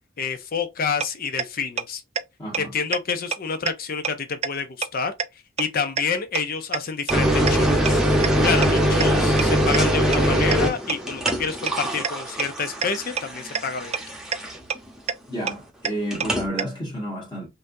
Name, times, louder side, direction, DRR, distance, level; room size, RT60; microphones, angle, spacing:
voice 1, 0.2-2.0 2.6-8.0 8.4-14.0, left 5 dB, 50° left, 0.6 m, -28 dB
sound 1, 1.0-1.1 1.4-1.5 1.8-1.9 2.2-2.3 2.5-2.6 2.9-3.0 3.3-3.4 3.7-3.8 4.0-4.1 4.4-4.5 4.8-4.9 5.2-5.3 5.6-5.7 6.0-6.1 6.3-6.4 6.7-6.8 7.1-7.2 7.5-7.6 7.8-7.9 8.2-8.3 8.6-8.7 9.0-9.1 9.4-9.5 9.7-9.8 10.1-10.2 10.5-10.6 10.9-11.0 11.3-11.4 11.7-11.8 12.0-12.1 12.4-12.5 12.8-12.9 13.2-13.3 13.5-13.6 13.9-14.0 14.3-14.4 14.7-14.8 15.1-15.2 15.5-15.6 15.8-15.9 16.2-16.3 16.6-16.7, right 7 dB, 35° right, 0.4 m, -24 dB
voice 2, 2.4-2.7 15.3-17.5, right 1 dB, 25° left, 1.4 m, -31 dB
sound 2, 7.1-14.8 16.1-16.5, equal, 5° right, 0.9 m, -22 dB
5.5 x 2.7 x 2.6 m
head